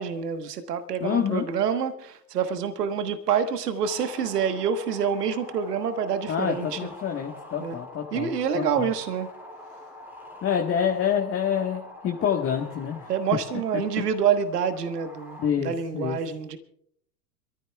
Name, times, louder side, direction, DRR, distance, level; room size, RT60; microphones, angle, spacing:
voice 1, 0.0-6.8 7.6-7.8 8.1-9.3 13.1-15.4 15.6-16.6, right 7 dB, 75° right, 1.5 m, -27 dB
voice 2, 1.0-1.4 6.3-8.9 10.4-13.1 15.4-16.2, left 8 dB, 25° left, 1.5 m, -27 dB
sound 1, 3.8-15.5, left 1 dB, 5° right, 2.4 m, -45 dB
27.0 x 14.5 x 2.4 m
hypercardioid pair, 95°, 48 cm